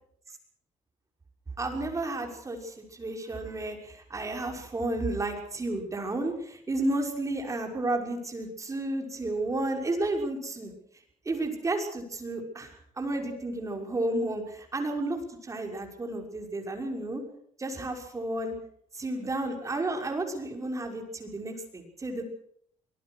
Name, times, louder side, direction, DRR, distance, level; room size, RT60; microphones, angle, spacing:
voice 1, 1.6-10.7 11.2-17.2 17.6-18.5 19.0-22.2, right 2 dB, 25° right, 3 dB, 6.1 m, -32 dB
25.5 x 19.0 x 6.5 m, 0.66 s
cardioid pair, 135°, 13 cm